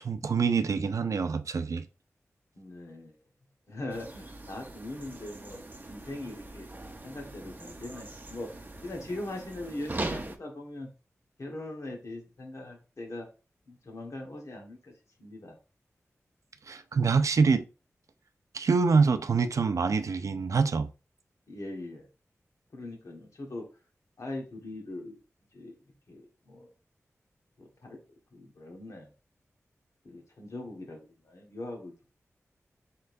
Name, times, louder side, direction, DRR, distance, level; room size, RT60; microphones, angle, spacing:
voice 1, 0.0-1.9 16.7-17.6 18.5-20.9, right 5 dB, 70° right, 0.4 m, -25 dB
voice 2, 2.5-3.1 3.7-6.7 7.0-10.9 11.4-13.3 13.7-14.9 15.2-15.6 21.5-22.1 22.7-23.7 24.2-25.2 25.5-25.7 26.1-26.7 27.6-28.0 28.3-29.1 30.0-32.1, left 2 dB, 65° left, 1.3 m, -41 dB
sound 1, 3.9-10.4, right 2 dB, 35° right, 0.7 m, -41 dB
4.4 x 3.7 x 2.6 m
cardioid pair, 40°, 6 cm